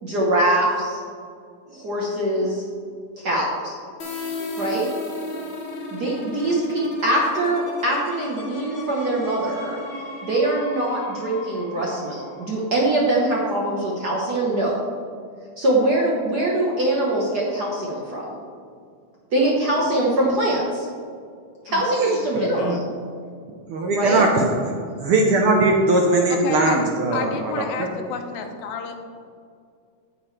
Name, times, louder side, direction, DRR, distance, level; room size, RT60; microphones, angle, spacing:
voice 1, 0.0-1.0 1.7-2.6 3.2-3.7 4.6-4.9 5.9-9.8 10.2-14.7 15.6-18.2 19.3-20.9 21.6-22.8 23.9-24.2, right 1 dB, 65° right, -3 dB, 1.0 m, -23 dB
sound 1, 4.0-13.6, left 2 dB, 50° left, 1.7 m, -35 dB
voice 2, 22.4-22.8 26.3-26.9 27.1-28.9, left 6 dB, 75° left, 5 dB, 2.1 m, -31 dB
voice 3, 23.7-24.7 25.0-28.0, right 2 dB, 80° right, 1 dB, 1.2 m, -20 dB
10.0 x 9.4 x 3.3 m, 2.2 s
omnidirectional pair, 3.5 m